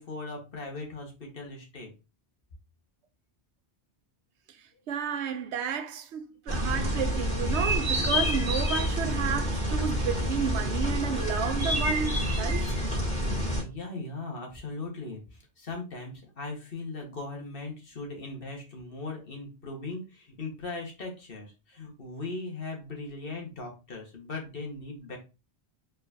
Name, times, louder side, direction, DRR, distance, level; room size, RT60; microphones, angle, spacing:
voice 1, 0.0-1.9 13.6-25.2, left 3 dB, 55° left, 1.6 m, -39 dB
voice 2, 4.9-12.7, right 7 dB, 80° right, 0.9 m, -32 dB
sound 1, 6.5-13.6, equal, 5° left, 2.0 m, -28 dB
4.6 x 4.0 x 2.6 m
omnidirectional pair, 1.1 m